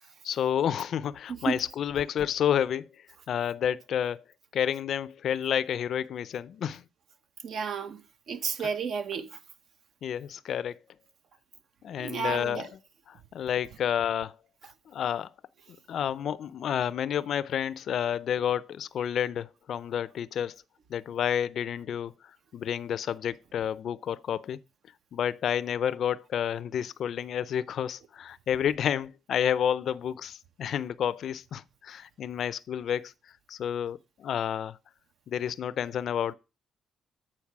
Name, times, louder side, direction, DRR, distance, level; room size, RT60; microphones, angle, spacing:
voice 1, 0.2-2.9 3.3-4.2 4.5-6.8 8.6-8.7 10.0-10.8 11.8-12.8 13.3-14.3 14.9-15.3 15.9-20.5 20.9-22.1 22.5-24.6 25.1-33.1 33.5-34.8 35.3-36.3, left 9 dB, 65° left, 0.4 m, -30 dB
voice 2, 7.4-8.0 8.3-9.3 12.0-12.6, right 5 dB, 65° right, 1.0 m, -31 dB
8.7 x 4.5 x 4.6 m
cardioid pair, 90°, 0 cm